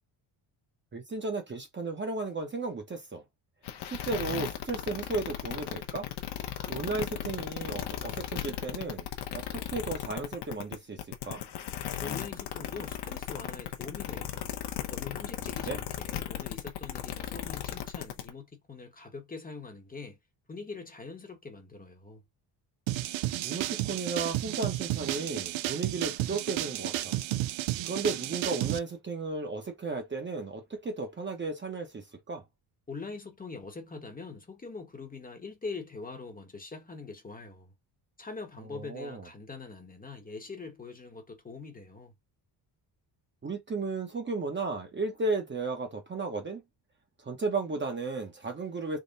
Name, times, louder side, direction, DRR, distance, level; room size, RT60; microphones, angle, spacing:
voice 1, 0.9-3.2 3.8-6.1 6.7-9.1 9.3-11.4 15.7-15.8 23.4-27.2 27.8-32.4 38.7-39.3 43.4-46.6 47.2-49.0, right 3 dB, 25° right, 0.9 m, -34 dB
sound 1, 3.6-18.3, left 11 dB, 60° left, 0.8 m, -36 dB
voice 2, 12.0-14.5 14.9-20.2 20.5-22.2 32.9-37.7 38.2-42.1, left 4 dB, 20° left, 1.0 m, -43 dB
sound 2, 22.9-28.8, right 15 dB, 90° right, 0.6 m, -32 dB
3.7 x 2.1 x 3.9 m
cardioid pair, 130°, 45 cm